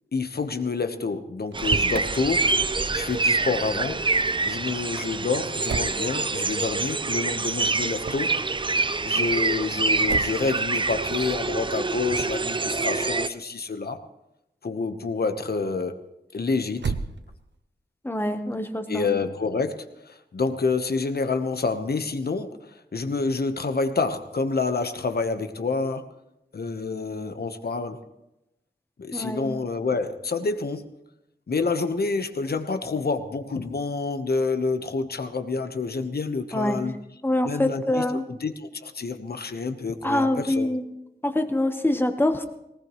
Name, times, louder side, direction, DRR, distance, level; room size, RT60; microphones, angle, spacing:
voice 1, 0.1-2.5 2.9-4.1 4.4-8.4 9.0-14.0 14.6-16.0 16.3-16.9 18.9-26.1 26.5-28.0 29.0-30.9 31.5-37.0 37.4-40.7, left 4 dB, 65° left, 8 dB, 1.2 m, -28 dB
Motor vehicle (road), 1.4-2.1 5.7-6.0 8.0-8.4 10.1-10.5 12.1-12.5 16.7-17.6, right 5 dB, 85° right, 0.7 m, -32 dB
sound 1, 1.5-13.3, right 3 dB, 25° right, 0.5 m, -26 dB
voice 2, 18.0-19.1 29.1-29.5 36.5-36.8 37.2-38.2 40.0-40.8 41.2-42.5, left 1 dB, 10° left, 6 dB, 1.2 m, -25 dB
19.5 x 19.0 x 3.2 m, 0.89 s
wide cardioid pair, 105°, 18 cm